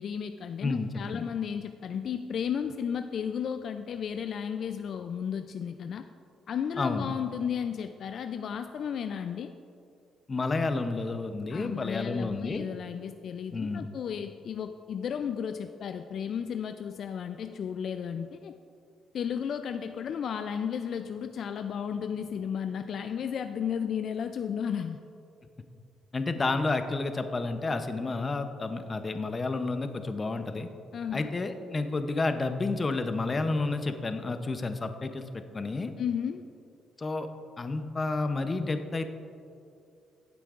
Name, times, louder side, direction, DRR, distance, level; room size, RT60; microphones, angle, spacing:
voice 1, 0.0-6.1 6.5-9.5 11.5-18.5 19.1-25.0 30.9-31.3 36.0-36.4, left 7 dB, 60° left, 8 dB, 0.3 m, -33 dB
voice 2, 0.6-1.3 6.8-7.1 10.3-12.6 13.5-13.9 26.1-30.7 31.1-35.9 37.0-37.3 37.6-39.1, left 3 dB, 30° left, 8 dB, 0.7 m, -30 dB
15.5 x 8.2 x 2.5 m, 2.5 s
cardioid pair, 90°, 0 cm